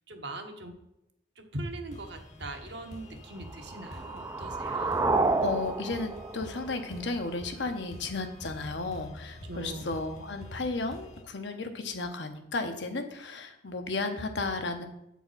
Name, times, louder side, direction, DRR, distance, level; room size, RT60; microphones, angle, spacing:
voice 1, 0.1-0.7 1.4-5.0 9.4-9.9, right 2 dB, 65° right, 4 dB, 1.0 m, -41 dB
sound 1, 1.9-11.2, left 1 dB, 40° left, 1.0 m, -47 dB
sound 2, 3.4-7.5, right 3 dB, 15° right, 0.3 m, -30 dB
voice 2, 5.4-14.9, left 3 dB, 70° left, 6 dB, 0.9 m, -34 dB
8.1 x 4.6 x 5.5 m, 0.85 s
head